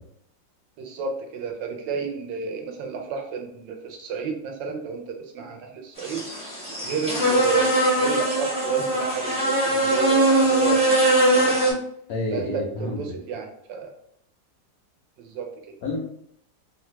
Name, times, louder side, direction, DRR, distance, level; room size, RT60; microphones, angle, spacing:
voice 1, 0.8-6.2 6.8-11.8 12.3-13.9 15.2-15.8, right 6 dB, 80° right, 3 dB, 1.3 m, -32 dB
sound 1, 6.0-11.7, right 1 dB, 10° right, 0.3 m, -21 dB
voice 2, 12.1-13.2 15.8-16.0, left 2 dB, 75° left, -2 dB, 0.8 m, -29 dB
3.2 x 2.2 x 3.0 m, 0.70 s
omnidirectional pair, 2.1 m